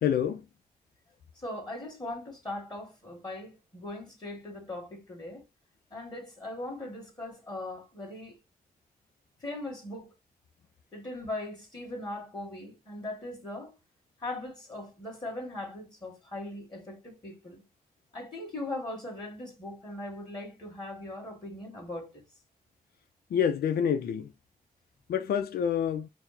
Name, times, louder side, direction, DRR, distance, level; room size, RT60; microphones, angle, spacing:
voice 1, 0.0-0.4 23.3-24.3 25.1-26.1, left 8 dB, 80° left, 0.4 m, -27 dB
voice 2, 1.4-5.4 5.9-8.4 9.4-10.1 10.9-13.7 14.2-17.6 18.1-22.2, left 2 dB, 25° left, 1.9 m, -39 dB
4.2 x 2.0 x 4.1 m
cardioid pair, 80°, 16 cm